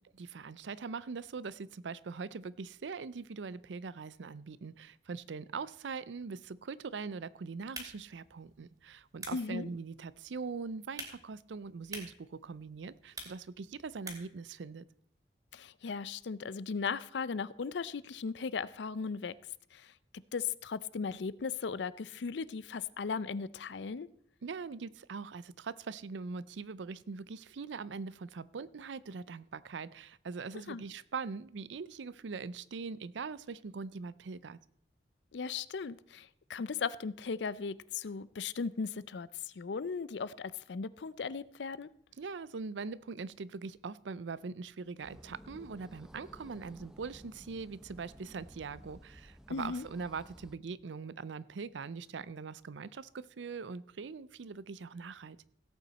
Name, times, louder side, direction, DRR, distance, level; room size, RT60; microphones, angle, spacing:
voice 1, 0.2-14.9 24.4-34.6 42.2-55.4, right 4 dB, 85° right, 0.5 m, -42 dB
sound 1, 7.6-14.4, right 2 dB, 20° right, 2.4 m, -50 dB
voice 2, 9.3-9.7 15.5-19.3 19.7-19.9 20.3-24.1 30.7-30.8 35.3-41.9 49.5-49.9, left 5 dB, 75° left, 0.5 m, -37 dB
sound 2, 45.0-50.6, equal, 5° right, 0.6 m, -54 dB
16.5 x 8.4 x 4.1 m
head